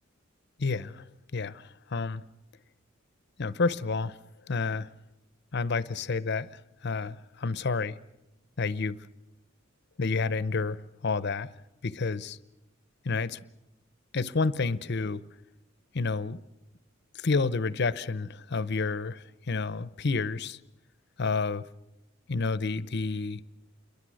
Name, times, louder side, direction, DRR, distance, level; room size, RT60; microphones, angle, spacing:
voice 1, 0.6-1.0 1.3-2.2 3.4-4.2 4.5-4.9 5.5-6.5 6.8-8.0 8.6-9.0 10.0-11.5 11.8-12.4 13.0-13.4 14.1-15.2 15.9-16.4 17.1-20.6 21.2-21.6 22.3-23.4, left 4 dB, 55° left, 0.8 m, -29 dB
28.0 x 22.5 x 6.4 m
head